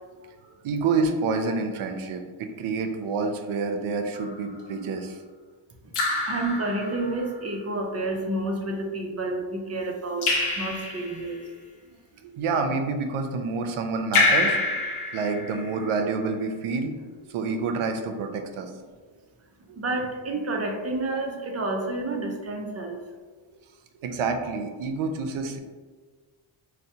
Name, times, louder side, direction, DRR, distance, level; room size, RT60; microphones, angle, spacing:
voice 1, 0.6-5.2 12.2-14.6 15.1-18.7 19.7-19.8 24.0-25.6, right 4 dB, 90° right, 5 dB, 0.6 m, -28 dB
Raindrop / Drip, 4.1-4.6 5.9-7.3 10.2-11.3 14.1-15.9, left 3 dB, 85° left, 0.8 m, -26 dB
voice 2, 6.3-11.4 19.8-23.0, right 2 dB, 35° right, 1 dB, 0.4 m, -30 dB
4.4 x 2.2 x 2.7 m, 1.4 s
wide cardioid pair, 135°, 48 cm